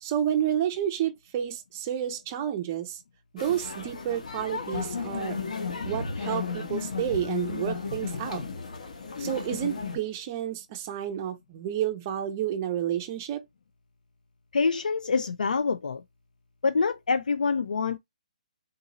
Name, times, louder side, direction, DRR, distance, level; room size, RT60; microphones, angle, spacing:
voice 1, 0.0-3.0 3.3-5.4 5.8-8.4 9.2-13.4, right 10 dB, 20° right, 0.4 m, -30 dB
sound 1, 3.4-10.0, left 5 dB, 65° left, 1.0 m, -34 dB
voice 2, 14.5-16.0 16.6-18.0, left 4 dB, 90° left, 0.4 m, -26 dB
3.8 x 2.7 x 2.8 m
hypercardioid pair, 175°, 4 cm